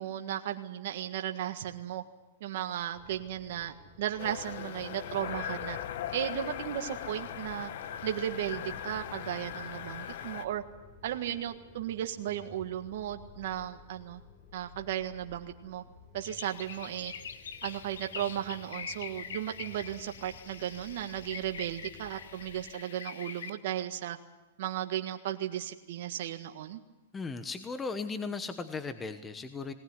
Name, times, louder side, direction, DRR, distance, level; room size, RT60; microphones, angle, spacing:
voice 1, 0.0-2.0 2.4-5.8 6.1-7.7 8.0-10.6 11.0-14.2 14.5-15.8 16.1-17.1 17.6-24.2 24.6-26.8, right 11 dB, 60° right, 5 dB, 1.7 m, -35 dB
sound 1, 2.9-22.7, left 4 dB, 30° left, 5.7 m, -55 dB
sound 2, 4.2-10.4, left 10 dB, 60° left, 1.3 m, -39 dB
sound 3, 16.2-23.5, left 7 dB, 80° left, 1.9 m, -44 dB
voice 2, 27.1-29.7, left 4 dB, 15° left, 10 dB, 1.1 m, -37 dB
19.5 x 19.0 x 9.7 m, 1.1 s
hypercardioid pair, 140°, 0 cm